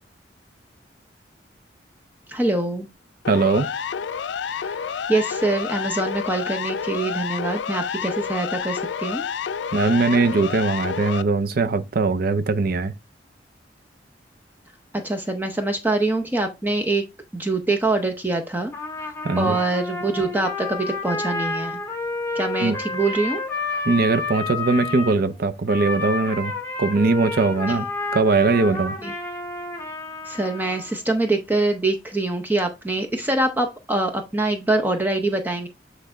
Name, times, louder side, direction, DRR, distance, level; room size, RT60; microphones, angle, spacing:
voice 1, 2.3-2.9 4.6-4.8 5.1-9.3 15.0-17.0 17.3-18.7 19.4-21.8 22.3-23.4 27.7-27.8 29.0-29.1 30.3-35.7, right 2 dB, 10° right, 0.7 m, -24 dB
Siren, 3.2-11.2, left 7 dB, 85° left, 0.4 m, -29 dB
voice 2, 3.3-3.7 9.7-12.9 19.2-19.6 22.6-22.8 23.9-26.5 26.8-27.9 28.1-28.9, right 3 dB, 60° right, 0.6 m, -20 dB
Trumpet, 18.7-25.2 25.7-31.0, left 3 dB, 15° left, 1.6 m, -30 dB
8.4 x 3.3 x 3.8 m
head